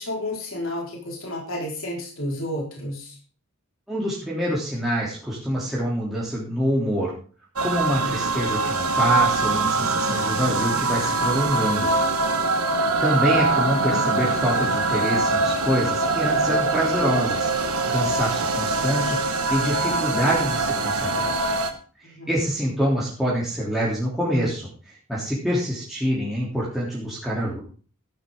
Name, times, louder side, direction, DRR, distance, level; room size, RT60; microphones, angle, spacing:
voice 1, 0.0-3.1 22.0-22.3, left 1 dB, 65° left, -2 dB, 4.8 m, -31 dB
voice 2, 3.9-7.1 7.6-11.9 13.0-17.5 17.9-21.3 22.3-27.6, equal, ahead, -7 dB, 3.2 m, -26 dB
sound 1, 7.6-21.7, right 3 dB, 90° right, 1.6 m, -23 dB
13.5 x 11.0 x 3.8 m, 0.39 s
head